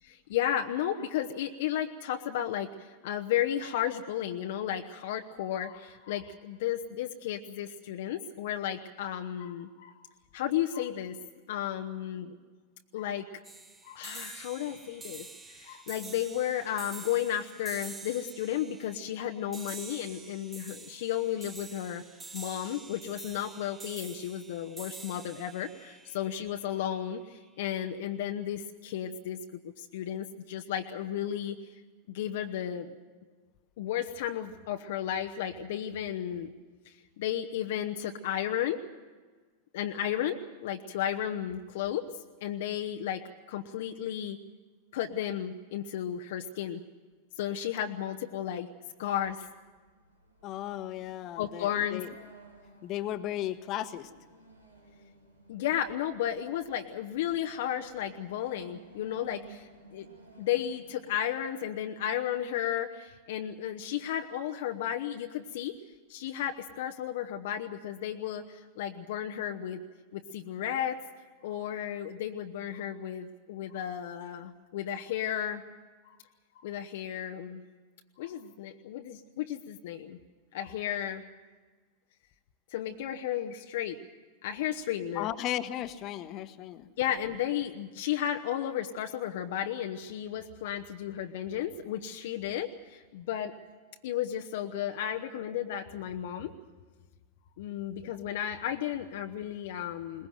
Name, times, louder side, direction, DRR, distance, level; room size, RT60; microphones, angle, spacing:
voice 1, 0.0-10.0 10.3-11.2 11.5-12.4 12.9-13.3 13.8-22.0 22.3-29.4 29.8-31.7 32.1-32.9 33.8-36.5 36.8-38.8 39.7-42.1 42.4-43.2 43.5-44.4 44.9-46.8 47.4-48.7 49.0-49.5 51.4-52.0 55.5-60.1 60.4-65.8 66.1-69.8 70.1-71.0 71.4-75.6 76.5-77.6 78.2-80.2 80.5-81.2 82.7-84.1 84.4-85.3 87.0-93.6 94.0-96.5 97.6-100.3, left 10 dB, 55° left, 5 dB, 0.9 m, -33 dB
sound 1, 13.4-26.9, right 3 dB, 15° right, 1.3 m, -47 dB
sound 2, 48.5-61.5, right 2 dB, 85° right, 2.6 m, -57 dB
voice 2, 50.4-52.1 52.8-54.1 85.1-86.9, left 12 dB, 35° left, 11 dB, 1.2 m, -35 dB
22.0 x 20.5 x 7.6 m, 1.4 s
figure-of-eight pair, 90°, 0 cm